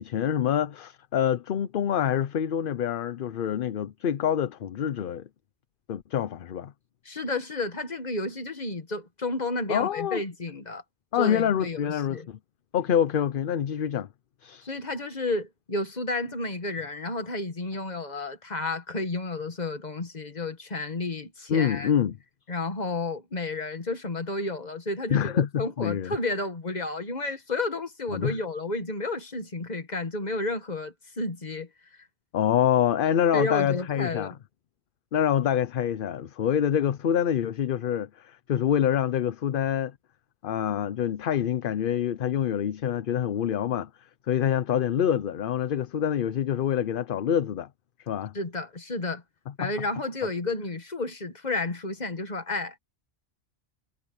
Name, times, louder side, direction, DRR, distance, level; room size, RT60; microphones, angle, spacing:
voice 1, 0.0-5.3 5.9-6.7 9.7-10.2 11.1-12.4 12.7-14.1 14.4-14.7 21.5-22.2 25.1-26.2 28.1-28.4 32.3-34.3 35.1-39.9 40.4-43.9 44.3-47.7 48.1-48.3 49.6-49.7, left 9 dB, 60° left, 0.8 m, -26 dB
voice 2, 7.1-10.8 11.2-12.3 14.6-21.9 22.5-31.7 33.3-34.4 48.3-49.2 49.6-52.8, left 2 dB, 40° left, 1.8 m, -31 dB
omnidirectional pair, 1.1 m